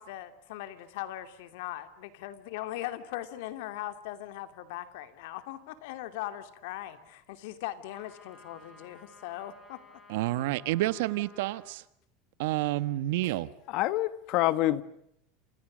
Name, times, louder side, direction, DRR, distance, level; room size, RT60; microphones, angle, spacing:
voice 1, 0.0-9.8, left 14 dB, 70° left, 2.8 m, -40 dB
sound 1, 7.9-11.8, left 2 dB, 10° left, 5.7 m, -55 dB
voice 2, 10.1-11.8 12.4-13.5, right 16 dB, 70° right, 1.4 m, -29 dB
voice 3, 13.7-14.8, left 16 dB, 45° left, 1.5 m, -26 dB
29.0 x 28.0 x 6.4 m
supercardioid pair, 165°, 0 cm